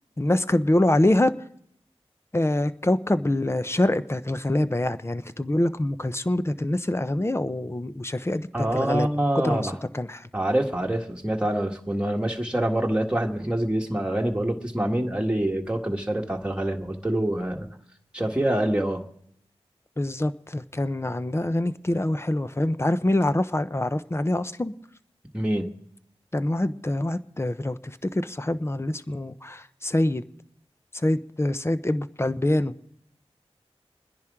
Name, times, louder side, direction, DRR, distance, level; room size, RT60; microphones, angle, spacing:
voice 1, 0.2-1.3 2.3-9.1 9.3-10.3 20.0-24.7 26.3-30.2 30.9-32.7, left 1 dB, 25° left, 12 dB, 0.7 m, -25 dB
voice 2, 8.5-9.7 10.3-17.7 18.1-19.0 25.3-25.7, right 1 dB, 10° right, 0 dB, 1.7 m, -25 dB
27.5 x 10.5 x 3.7 m, 0.70 s
cardioid pair, 45°, 11 cm